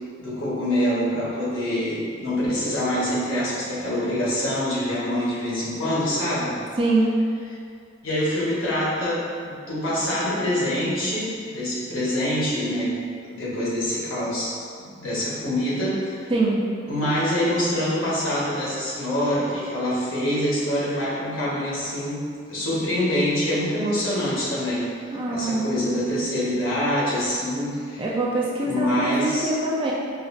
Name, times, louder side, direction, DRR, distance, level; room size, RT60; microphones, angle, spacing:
voice 1, 0.2-6.6 8.0-12.9 13.2-16.3 16.9-24.9 25.3-28.1 28.7-29.5, equal, 75° left, -8 dB, 1.1 m, -25 dB
voice 2, 6.8-7.1 16.3-16.7 25.1-25.7 28.0-29.9, right 2 dB, 25° right, -4 dB, 0.3 m, -23 dB
5.0 x 2.0 x 2.6 m, 2.2 s
head